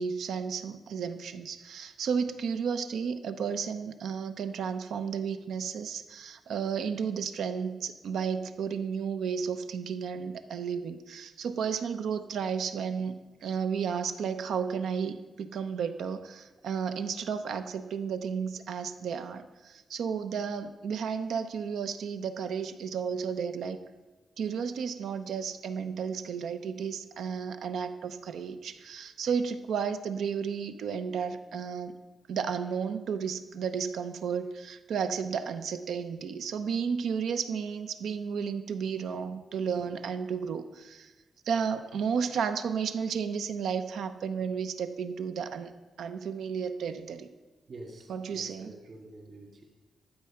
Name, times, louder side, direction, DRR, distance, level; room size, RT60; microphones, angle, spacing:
voice 1, 0.0-23.8 24.4-31.9 32.3-41.1 41.5-45.7 46.0-47.3 48.1-48.7, right 6 dB, 85° right, 9 dB, 0.7 m, -33 dB
voice 2, 47.7-49.6, right 2 dB, 50° right, 1 dB, 2.6 m, -47 dB
12.0 x 8.4 x 5.8 m, 1.2 s
wide cardioid pair, 150°, 0 cm